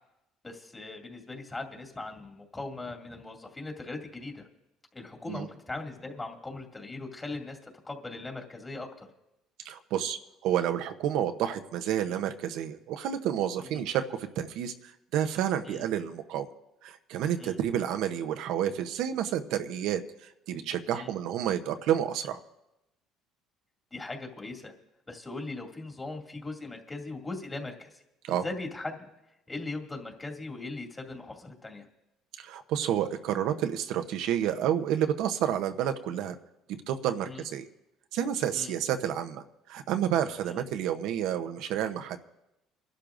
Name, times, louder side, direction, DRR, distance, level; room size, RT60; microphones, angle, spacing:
voice 1, 0.4-4.5 4.9-9.1 13.7-13.8 15.6-15.9 17.4-17.6 20.9-21.1 23.9-24.7 25.1-28.0 28.3-29.1 29.5-31.9 37.3-37.4 38.5-38.7, left 2 dB, 20° left, 1 dB, 2.3 m, -39 dB
voice 2, 9.6-16.5 16.8-22.4 28.2-28.4 32.4-36.4 36.9-37.7 38.1-42.2, right 10 dB, 75° right, 8 dB, 0.8 m, -30 dB
29.5 x 12.0 x 2.6 m, 0.92 s
supercardioid pair, 95°, 0 cm